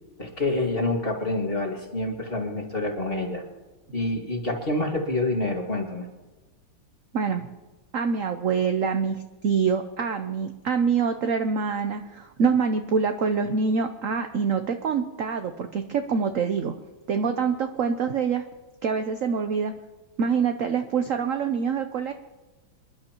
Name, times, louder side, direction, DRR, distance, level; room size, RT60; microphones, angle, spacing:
voice 1, 0.2-3.4 3.9-6.1, left 2 dB, 30° left, 1 dB, 2.1 m, -27 dB
voice 2, 7.1-7.5 7.9-16.7 17.1-18.4 18.8-19.7 20.2-22.1, right 6 dB, 70° right, 7 dB, 0.8 m, -25 dB
26.5 x 11.5 x 3.0 m, 1.2 s
omnidirectional pair, 2.3 m